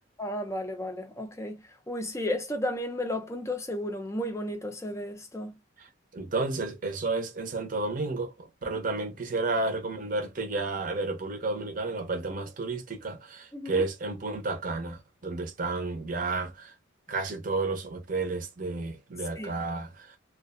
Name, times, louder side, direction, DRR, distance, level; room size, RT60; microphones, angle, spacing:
voice 1, 0.2-5.6 8.7-8.8 13.5-13.8 19.4-19.5, left 1 dB, 15° left, 0.4 m, -33 dB
voice 2, 5.8-16.7 17.1-20.2, right 3 dB, 40° right, 0.6 m, -32 dB
2.4 x 2.2 x 2.4 m
head